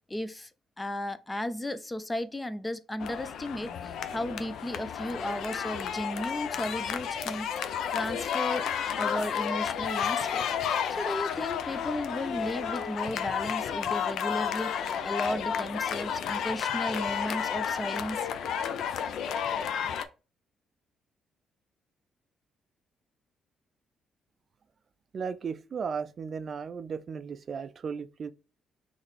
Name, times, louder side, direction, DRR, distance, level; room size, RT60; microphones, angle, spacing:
voice 1, 0.1-0.5 0.8-7.5 7.9-8.7 8.9-10.4 11.0-18.2 18.8-18.9, left 1 dB, 15° left, 0.5 m, -35 dB
sound 1, 3.0-20.1, left 8 dB, 75° left, 0.4 m, -32 dB
voice 2, 25.1-28.3, right 6 dB, 50° right, 0.3 m, -35 dB
4.0 x 3.2 x 3.2 m
cardioid pair, 90°, 0 cm